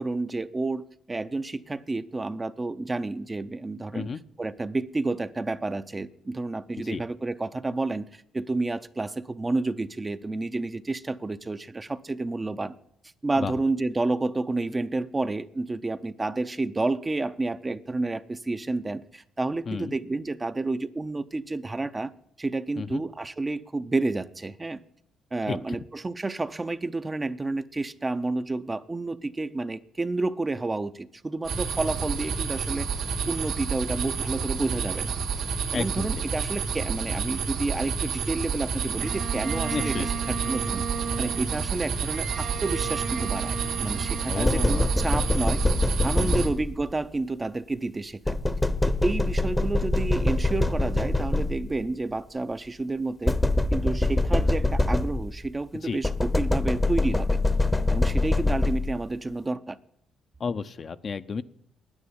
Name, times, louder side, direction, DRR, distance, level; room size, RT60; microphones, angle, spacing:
voice 1, 0.0-4.1 4.4-12.8 13.2-22.1 22.4-24.8 25.3-32.9 33.3-35.1 35.7-40.9 41.2-45.6 46.0-48.4 48.8-53.4 53.7-57.3 57.9-59.8, right 2 dB, 20° right, 0.6 m, -30 dB
sound 1, 31.4-46.5, right 6 dB, 85° right, 2.4 m, -30 dB
voice 2, 35.7-36.2 39.7-40.1 44.3-45.2 46.2-46.5 55.8-56.0 60.4-61.4, left 5 dB, 45° left, 0.6 m, -32 dB
Bowed string instrument, 39.0-46.3, right 7 dB, 65° right, 2.0 m, -36 dB
sound 2, 44.4-46.9 48.3-51.8 53.3-55.5 56.0-59.1, left 2 dB, 10° left, 0.8 m, -24 dB
9.7 x 9.5 x 9.5 m
cardioid pair, 90°, 0 cm